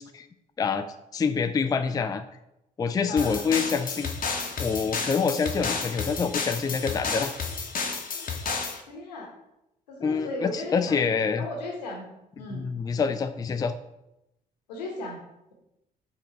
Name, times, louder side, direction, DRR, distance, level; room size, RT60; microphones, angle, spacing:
voice 1, 0.6-2.2 2.8-4.1 4.6-7.3 10.0-11.5 12.5-13.7, left 5 dB, 20° left, 9 dB, 0.4 m, -26 dB
voice 2, 3.1-3.5 8.9-9.3 9.9-11.0 11.4-12.1 12.4-12.7 14.7-15.2, left 2 dB, 80° left, 1 dB, 1.2 m, -36 dB
sound 1, 3.2-8.8, left 4 dB, 40° left, 1.0 m, -31 dB
5.1 x 3.8 x 5.5 m, 0.89 s
figure-of-eight pair, 45°, 21 cm